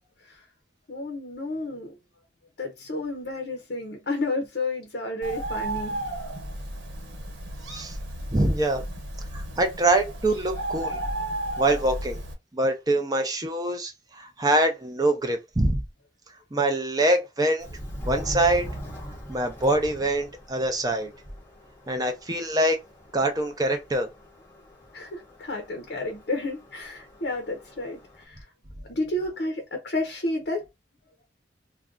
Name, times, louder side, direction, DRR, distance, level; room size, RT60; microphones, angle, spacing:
voice 1, 0.9-2.0 2.6-6.0 24.9-28.5 28.9-30.7, left 2 dB, 55° left, 0.6 m, -31 dB
Bird, 5.2-12.3, right 1 dB, 80° right, 1.0 m, -33 dB
voice 2, 8.3-8.8 9.3-11.0 11.6-12.2 12.5-15.8 16.5-17.7 18.0-18.7 19.3-21.1 21.9-22.8 23.1-24.1, right 1 dB, 20° right, 0.5 m, -24 dB
Subway metro underground, 17.6-28.2, equal, 10° left, 0.8 m, -42 dB
2.5 x 2.2 x 3.6 m
head